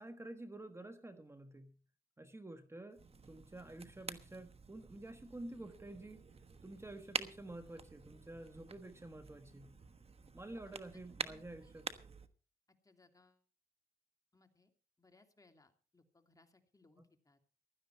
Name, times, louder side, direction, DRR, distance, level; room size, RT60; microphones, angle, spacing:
voice 1, 0.0-1.8 2.2-6.3 6.6-9.7 10.3-11.9, right 2 dB, 15° right, 8 dB, 1.3 m, -50 dB
sound 1, 2.9-12.3, right 4 dB, 40° right, 1.2 m, -48 dB
voice 2, 11.2-11.7 12.7-13.4 14.3-14.7 15.0-17.4, left 3 dB, 20° left, 6 dB, 2.6 m, -68 dB
16.0 x 12.0 x 4.4 m, 0.38 s
cardioid pair, 75°, 16 cm